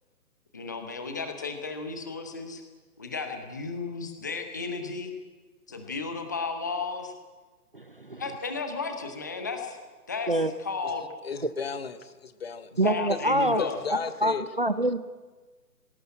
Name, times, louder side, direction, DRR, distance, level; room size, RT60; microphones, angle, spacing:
voice 1, 0.5-2.6 3.0-5.1 5.7-7.1 8.2-9.8 10.1-11.0 12.7-13.8, left 4 dB, 10° left, 5 dB, 0.7 m, -34 dB
voice 2, 7.7-8.2 10.3-10.5 12.8-13.6 13.9-15.0, right 1 dB, 35° right, 13 dB, 0.5 m, -26 dB
voice 3, 11.2-12.7 13.1-13.2 13.6-14.5, left 6 dB, 40° left, 11 dB, 1.2 m, -34 dB
19.5 x 17.5 x 8.7 m, 1.3 s
figure-of-eight pair, 145°, 49 cm